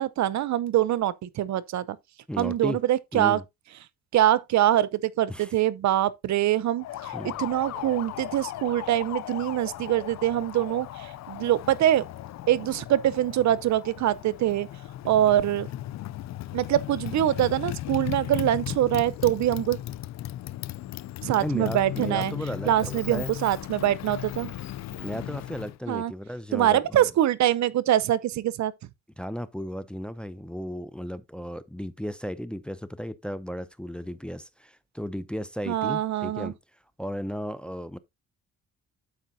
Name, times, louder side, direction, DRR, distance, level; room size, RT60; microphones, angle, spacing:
voice 1, 0.0-2.0 2.4-3.4 4.1-7.1 7.4-12.1 12.5-14.7 15.0-15.7 16.5-19.8 21.2-22.3 22.7-24.5 25.9-26.1 26.5-28.7 35.7-36.5, right 12 dB, 65° right, 0.7 m, -24 dB
voice 2, 2.3-2.8 3.1-3.4 5.3-5.5 7.1-7.4 21.4-23.3 25.0-27.1 29.2-36.6 37.0-38.0, equal, 5° left, 0.6 m, -35 dB
Motorcycle, 6.8-25.8, left 13 dB, 65° left, 0.5 m, -36 dB
12.5 x 4.9 x 2.7 m
cardioid pair, 90°, 30 cm